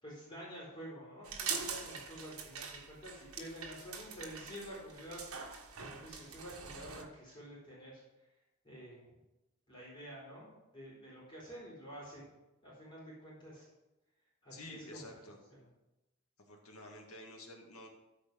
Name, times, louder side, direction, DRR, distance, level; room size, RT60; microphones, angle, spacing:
voice 1, 0.0-5.2 5.5-8.0 8.6-9.1 9.7-12.2 12.6-13.7 14.4-15.1 15.5-15.7, equal, 20° left, -6 dB, 4.3 m, -49 dB
sound 1, 1.2-7.0, right 5 dB, 80° right, 1.3 m, -43 dB
voice 2, 14.5-15.4 16.4-17.9, left 1 dB, 85° left, 1 dB, 2.0 m, -50 dB
14.0 x 4.9 x 6.1 m, 0.98 s
head